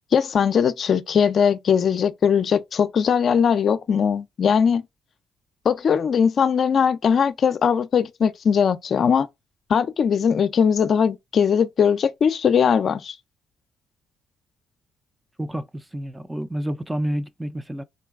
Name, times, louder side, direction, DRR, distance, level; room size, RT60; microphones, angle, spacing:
voice 1, 0.1-4.8 5.6-9.3 9.7-13.1, left 7 dB, 55° left, 0.4 m, -20 dB
voice 2, 15.4-17.8, equal, 10° right, 0.4 m, -29 dB
3.8 x 2.2 x 3.5 m
cardioid pair, 90°, 0 cm